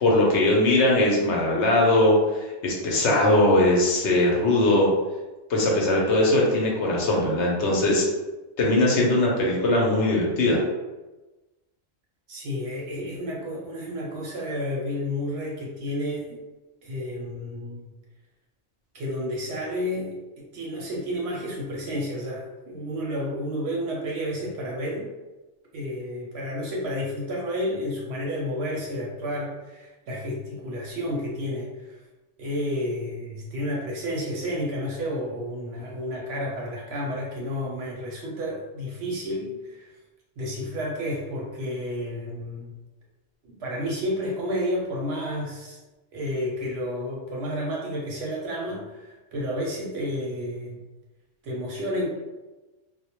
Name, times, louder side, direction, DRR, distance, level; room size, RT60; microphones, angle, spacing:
voice 1, 0.0-4.9 5.5-8.1 8.6-10.6, left 1 dB, 65° left, -2 dB, 0.8 m, -20 dB
voice 2, 12.3-16.4 16.8-17.8 18.9-25.1 25.7-32.0 32.4-39.9 40.4-42.7 43.5-45.8 46.1-50.8 51.4-52.1, equal, 65° right, -3 dB, 0.7 m, -31 dB
2.1 x 2.1 x 2.8 m, 1.1 s
omnidirectional pair, 1.3 m